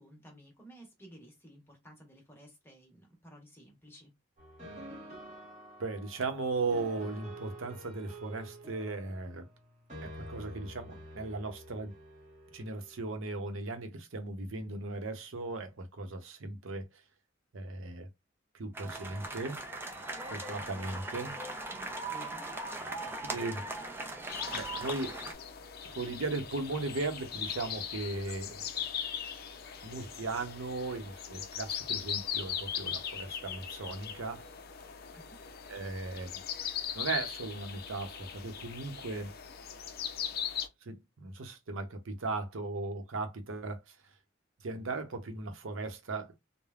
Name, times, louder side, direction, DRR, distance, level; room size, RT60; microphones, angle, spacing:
voice 1, 0.0-4.1 21.7-22.5 35.1-35.5, equal, 10° left, 1.1 m, -54 dB
sound 1, 4.4-13.0, equal, 35° right, 1.1 m, -49 dB
voice 2, 5.8-9.5 10.0-11.9 12.5-16.8 17.5-18.1 18.5-19.6 20.2-21.4 23.2-23.7 24.5-25.2 25.9-28.8 29.8-34.4 35.7-36.4 36.9-39.3 40.8-44.0 44.6-46.4, right 3 dB, 90° right, 0.7 m, -37 dB
sound 2, 18.7-25.3, right 2 dB, 10° right, 0.5 m, -39 dB
sound 3, 24.3-40.7, left 8 dB, 50° left, 0.4 m, -39 dB
3.3 x 2.1 x 2.3 m
head